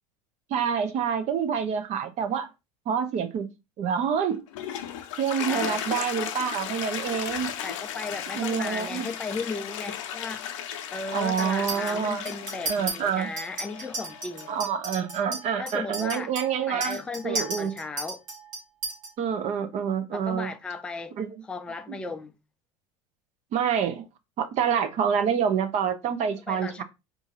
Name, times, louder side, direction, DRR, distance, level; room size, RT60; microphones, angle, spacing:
voice 1, 0.5-2.5 2.9-3.5 3.8-4.4 5.2-7.5 8.3-9.1 11.1-12.3 12.7-13.3 14.5-17.7 19.2-20.5 21.2-21.4 21.9-22.0 23.5-24.0 24.4-26.8, right 7 dB, 45° right, 0.6 m, -27 dB
Toilet flush, 4.3-14.7, left 9 dB, 85° left, 0.5 m, -35 dB
voice 2, 5.5-5.8 7.6-10.4 10.9-14.5 15.6-16.3 16.7-18.2 20.1-21.2 21.5-22.3 26.5-26.8, left 4 dB, 5° left, 0.3 m, -35 dB
Chink clink, 11.4-11.9 12.3-12.9 13.4-19.1, right 3 dB, 90° right, 2.0 m, -34 dB
3.7 x 2.6 x 2.9 m
supercardioid pair, 100°, 16 cm